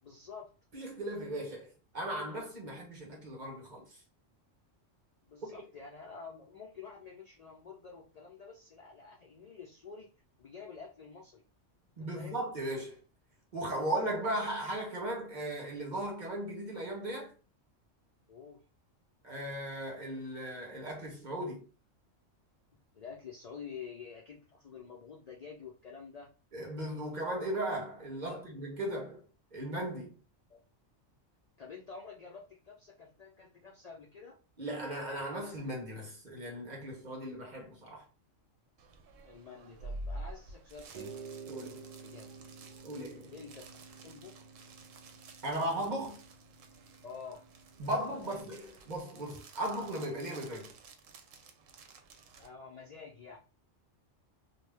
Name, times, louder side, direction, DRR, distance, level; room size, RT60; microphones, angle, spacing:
voice 1, 0.0-0.6 5.3-10.1 10.4-11.4 12.0-12.4 18.3-18.6 22.9-26.3 28.3-28.4 30.5-30.6 31.6-34.4 39.2-41.1 42.0-42.3 43.3-43.7 44.0-44.5 47.0-47.5 47.8-48.5 52.4-53.4, left 5 dB, 80° left, 0.3 m, -49 dB
voice 2, 0.7-4.0 12.0-13.0 13.5-17.3 19.2-21.7 26.5-29.2 29.5-30.2 34.6-38.0 41.5-41.8 42.8-43.3 45.4-46.2 47.8-50.7, right 1 dB, 40° right, 1.0 m, -37 dB
sound 1, 38.8-52.5, right 1 dB, 80° right, 0.9 m, -50 dB
sound 2, 40.9-48.6, right 5 dB, 55° right, 0.4 m, -51 dB
2.7 x 2.2 x 3.2 m
omnidirectional pair, 1.3 m